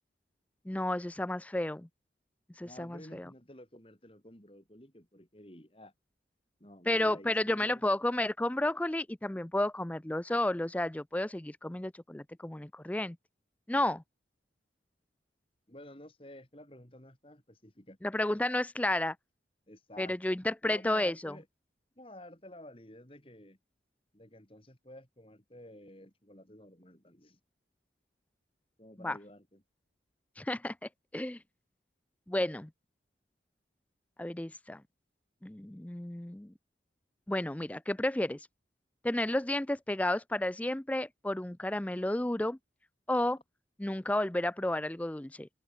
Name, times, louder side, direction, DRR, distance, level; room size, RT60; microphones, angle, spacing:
voice 1, 0.7-1.9 2.6-3.3 6.9-13.2 13.7-14.0 18.0-19.2 20.0-21.4 29.0-29.2 30.4-30.8 31.1-31.4 32.3-32.7 34.2-34.8 35.4-36.5 37.3-38.5 39.0-42.6 43.1-43.4 43.8-45.5, left 1 dB, 10° left, 0.4 m, -32 dB
voice 2, 2.6-5.9 6.6-7.8 15.7-18.0 19.7-20.2 20.6-21.5 22.0-23.6 24.1-27.4 28.8-29.6, left 1 dB, 30° left, 4.3 m, -52 dB
head